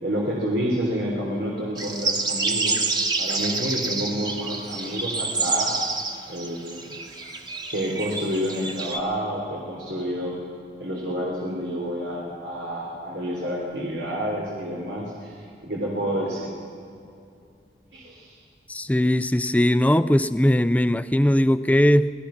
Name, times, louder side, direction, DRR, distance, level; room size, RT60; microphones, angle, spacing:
voice 1, 0.0-2.9 3.2-5.8 6.3-6.9 7.7-10.4 10.8-15.3 15.6-16.5 17.9-18.4, equal, 85° right, -3 dB, 3.7 m, -29 dB
sound 1, 1.8-9.0, right 3 dB, 25° right, 1.4 m, -28 dB
voice 2, 18.7-22.1, left 1 dB, 10° left, 13 dB, 0.4 m, -19 dB
25.0 x 17.5 x 5.9 m, 2.5 s
head